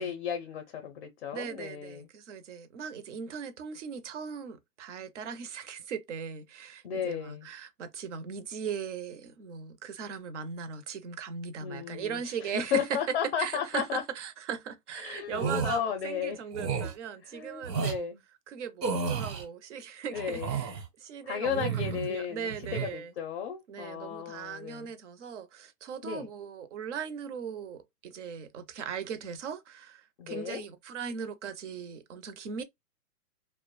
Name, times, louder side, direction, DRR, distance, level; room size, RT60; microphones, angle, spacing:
voice 1, 0.0-2.1 6.8-7.5 11.6-12.2 12.7-14.0 15.0-16.4 17.3-18.2 20.1-20.5 21.2-24.9 26.0-26.3 30.2-30.6, left 8 dB, 45° left, 0.5 m, -34 dB
voice 2, 1.3-18.1 18.5-23.1 23.7-32.6, right 7 dB, 50° right, 0.5 m, -38 dB
sound 1, 15.3-15.8 16.5-16.9 17.6-18.0 18.8-19.4 20.1-20.9 21.4-22.1 22.5-22.9, right 5 dB, 85° right, 1.0 m, -32 dB
2.3 x 2.0 x 3.0 m
hypercardioid pair, 155°, 48 cm